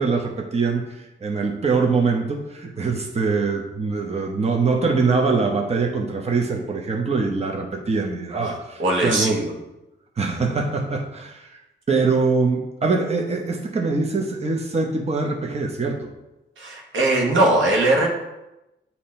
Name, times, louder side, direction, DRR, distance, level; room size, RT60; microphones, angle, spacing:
voice 1, 0.0-9.5 10.2-11.6 11.9-16.1, right 4 dB, 35° right, 1 dB, 0.9 m, -23 dB
voice 2, 8.8-9.4 16.6-18.1, right 2 dB, 85° right, 0 dB, 1.3 m, -20 dB
8.5 x 2.9 x 4.3 m, 0.95 s
cardioid pair, 85°, 19 cm